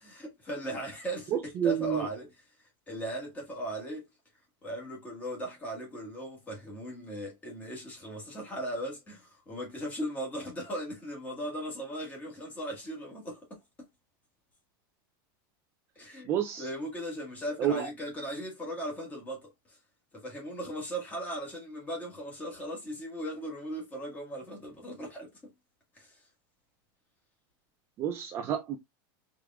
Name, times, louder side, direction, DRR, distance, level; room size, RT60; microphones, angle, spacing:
voice 1, 0.0-1.4 1.6-2.3 2.9-4.0 4.6-13.4 15.9-16.3 16.6-19.5 20.1-25.3 25.9-26.2, equal, 15° left, 1.5 m, -38 dB
voice 2, 1.3-2.1 16.3-16.7 17.6-17.9 28.0-28.8, right 10 dB, 20° right, 0.4 m, -29 dB
4.7 x 3.6 x 2.3 m
supercardioid pair, 180°, 12 cm